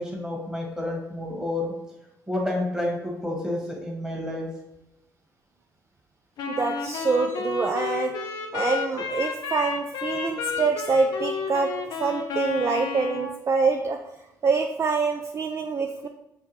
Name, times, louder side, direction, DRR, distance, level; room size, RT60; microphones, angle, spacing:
voice 1, 0.0-1.7 2.3-4.5, left 1 dB, 10° right, -2 dB, 1.4 m, -29 dB
Wind instrument woodwind instrument, 6.4-13.3, left 5 dB, 70° left, 0.5 m, -31 dB
voice 2, 6.6-8.1 8.5-11.7 12.0-14.0 14.4-16.1, right 4 dB, 40° right, 4 dB, 0.3 m, -25 dB
5.5 x 2.2 x 3.0 m, 0.87 s
supercardioid pair, 65°, 7 cm